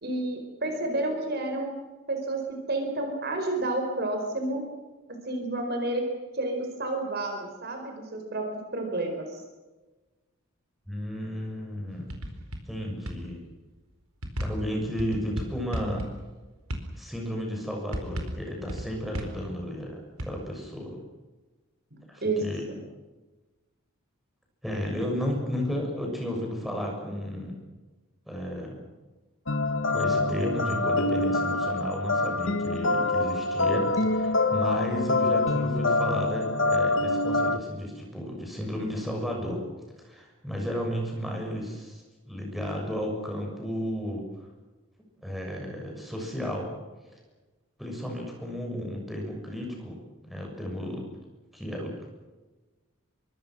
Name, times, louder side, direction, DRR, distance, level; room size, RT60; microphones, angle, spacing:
voice 1, 0.0-1.8 2.1-4.6 5.3-6.0 6.3-8.5 8.7-9.4 21.9-22.4, right 2 dB, 50° right, 4 dB, 4.7 m, -30 dB
voice 2, 10.9-12.2 12.7-13.4 14.4-16.1 17.0-21.0 22.1-22.6 24.6-27.6 28.3-28.8 29.9-39.6 40.0-44.2 45.2-46.7 47.8-51.1 51.5-52.1, equal, ahead, 0 dB, 6.9 m, -33 dB
sound 1, 11.9-12.7 13.1-13.2 14.2-16.4 16.7-17.0 17.9-19.5 20.2-20.3, equal, 90° right, 4.5 m, -33 dB
sound 2, 29.5-37.6, left 2 dB, 60° left, 1.4 m, -25 dB
26.0 x 24.0 x 6.3 m, 1.2 s
head